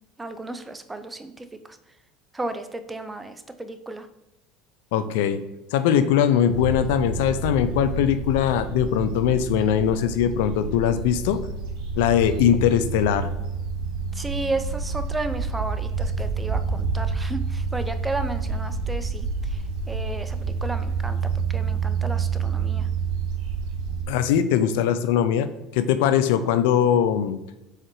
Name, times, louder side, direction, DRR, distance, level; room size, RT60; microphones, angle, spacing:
voice 1, 0.2-1.8 2.3-4.1 14.1-19.6 19.9-21.2 21.5-22.9, right 2 dB, 15° right, 10 dB, 0.6 m, -33 dB
voice 2, 4.9-5.4 5.7-11.4 12.0-13.3 24.1-25.5 25.7-27.4, left 9 dB, 80° left, 11 dB, 0.4 m, -21 dB
sound 1, 6.5-24.0, right 5 dB, 65° right, 2.1 m, -28 dB
4.9 x 4.3 x 4.7 m, 0.96 s
supercardioid pair, 95°, 0 cm